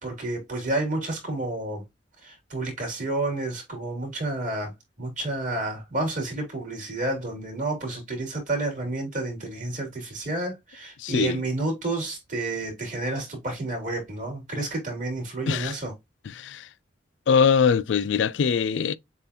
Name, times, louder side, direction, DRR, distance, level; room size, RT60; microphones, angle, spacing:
voice 1, 0.0-1.8 2.2-4.7 5.0-15.9, right 2 dB, 45° right, 2.9 m, -30 dB
voice 2, 11.0-11.4 15.5-15.7 16.3-16.7 17.3-18.9, left 6 dB, 80° left, 0.4 m, -22 dB
7.0 x 2.5 x 2.8 m
head